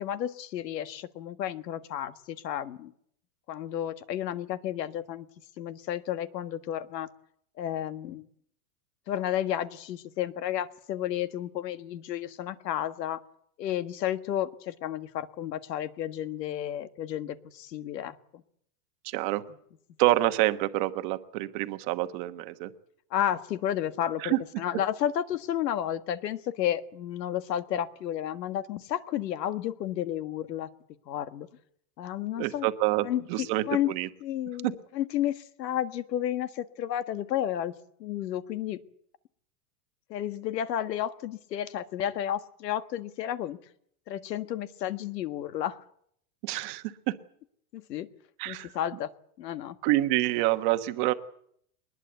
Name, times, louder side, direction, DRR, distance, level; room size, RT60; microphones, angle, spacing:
voice 1, 0.0-2.9 3.5-5.3 5.6-7.1 7.6-8.2 9.1-13.2 13.6-18.4 23.1-30.7 31.1-31.5 32.0-32.7 33.0-33.2 33.7-33.9 34.2-37.7 38.0-38.8 40.1-43.6 44.1-45.8 47.7-48.1 48.4-49.1 49.4-49.8, left 11 dB, 75° left, 11 dB, 1.7 m, -32 dB
voice 2, 19.0-19.4 20.0-22.7 24.2-24.4 32.4-34.1 34.6-34.7 46.4-47.1 48.4-48.7 49.8-51.1, right 16 dB, 30° right, 10 dB, 1.2 m, -27 dB
22.0 x 20.5 x 8.1 m, 0.68 s
supercardioid pair, 175°, 49 cm